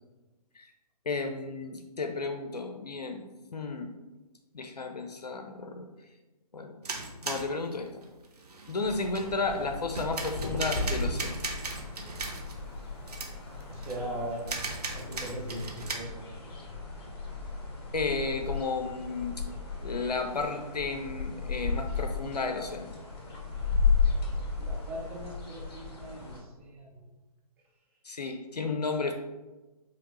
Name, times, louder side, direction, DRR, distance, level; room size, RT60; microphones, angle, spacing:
voice 1, 1.1-3.3 3.5-3.9 4.5-5.9 6.5-6.8 7.2-8.0 8.7-11.4 17.9-19.4 19.8-23.0 28.0-29.1, left 3 dB, 80° left, 4 dB, 0.5 m, -33 dB
sound 1, 6.8-9.5 9.9-12.6 13.1-13.3 13.6-14.0 14.4-16.0, right 3 dB, 75° right, 0.8 m, -37 dB
sound 2, 8.8-26.4, left 4 dB, 40° left, 1.1 m, -34 dB
voice 2, 13.7-14.5 14.9-16.3 16.6-16.8 24.6-27.1, right 1 dB, 10° right, -4 dB, 0.5 m, -39 dB
4.9 x 2.9 x 3.0 m, 1.1 s
figure-of-eight pair, 140°, 20 cm